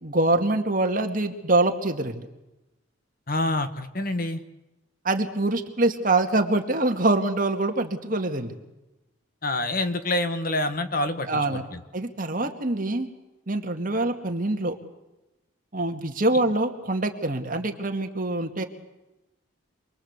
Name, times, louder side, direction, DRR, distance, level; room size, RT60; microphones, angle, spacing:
voice 1, 0.0-2.3 5.0-8.5 11.3-11.6 11.9-13.1 13.5-14.8 15.7-18.6, right 2 dB, 40° right, 5 dB, 2.2 m, -24 dB
voice 2, 3.3-4.4 9.4-11.4 11.7-11.8, left 1 dB, 45° left, 9 dB, 1.6 m, -26 dB
28.0 x 22.0 x 8.3 m, 1.0 s
head